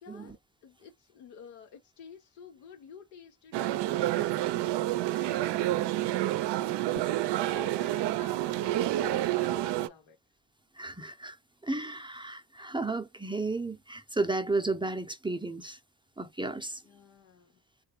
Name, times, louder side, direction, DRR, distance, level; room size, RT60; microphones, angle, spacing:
voice 1, 0.0-4.4 4.8-6.1 6.6-7.0 7.3-10.2 16.8-17.5, left 7 dB, 85° left, 1.1 m, -51 dB
sound 1, 3.5-9.9, right 15 dB, 65° right, 0.5 m, -29 dB
voice 2, 10.8-11.4 11.6-15.8 16.2-16.8, right 2 dB, 10° right, 0.6 m, -33 dB
3.1 x 2.4 x 2.9 m
hypercardioid pair, 45°, 46 cm